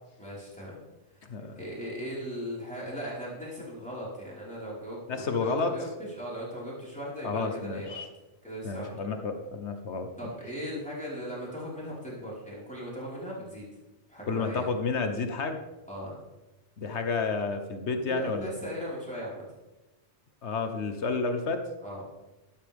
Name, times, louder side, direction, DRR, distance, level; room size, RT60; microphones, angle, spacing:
voice 1, 0.2-0.8 1.2-1.3 1.6-8.1 8.4-9.1 10.2-13.7 14.1-14.7 15.9-16.1 18.1-19.5 21.8-22.0, equal, 5° left, -7 dB, 4.6 m, -38 dB
voice 2, 5.1-5.8 7.2-8.1 8.6-10.1 14.3-15.6 16.8-18.7 20.4-21.6, left 4 dB, 75° left, 7 dB, 1.3 m, -30 dB
12.5 x 12.0 x 3.5 m, 1.0 s
omnidirectional pair, 1.2 m